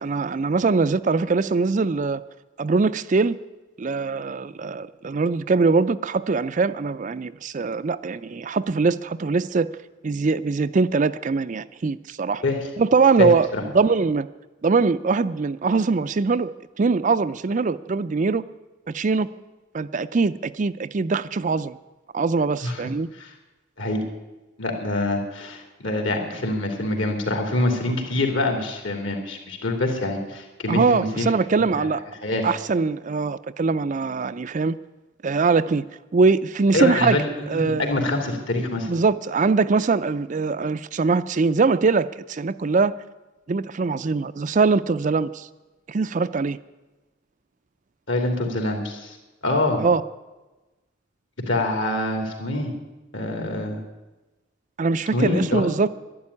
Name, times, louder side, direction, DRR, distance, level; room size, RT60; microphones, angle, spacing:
voice 1, 0.0-2.2 2.6-3.4 3.8-9.7 10.0-12.4 12.8-13.5 13.7-14.3 14.6-16.5 16.8-18.4 18.9-19.3 19.7-21.8 22.1-23.1 30.7-32.0 32.4-34.8 35.2-35.9 36.1-37.2 37.5-37.9 38.9-43.0 43.5-45.5 45.9-46.6 49.8-50.0 54.8-55.9, right 4 dB, 40° right, 13 dB, 0.4 m, -22 dB
voice 2, 13.2-13.6 22.6-22.8 23.1-23.3 23.8-24.0 24.6-31.3 31.7-31.9 32.2-32.5 36.7-38.9 48.1-49.2 49.4-49.8 51.5-52.7 53.1-53.8 55.1-55.6, left 2 dB, 65° left, 4 dB, 3.1 m, -25 dB
12.0 x 11.5 x 9.7 m, 1.1 s
head